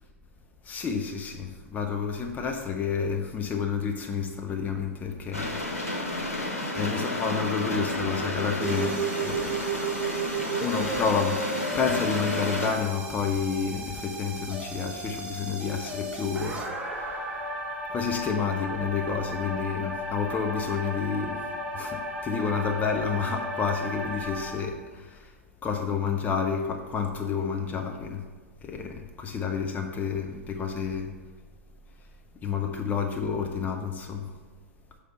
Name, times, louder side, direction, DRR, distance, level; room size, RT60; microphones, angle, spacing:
voice 1, 0.6-5.6 6.0-6.4 6.7-9.8 10.6-17.4 17.9-21.5 21.7-25.4 25.6-28.2 28.6-31.1 32.4-34.4, left 6 dB, 20° left, 3 dB, 0.5 m, -30 dB
sound 1, 5.3-12.7, left 1 dB, 85° left, 1.2 m, -31 dB
sound 2, 8.6-24.6, right 2 dB, 10° right, 1.1 m, -34 dB
6.4 x 3.3 x 5.5 m, 1.4 s
figure-of-eight pair, 105°, 8 cm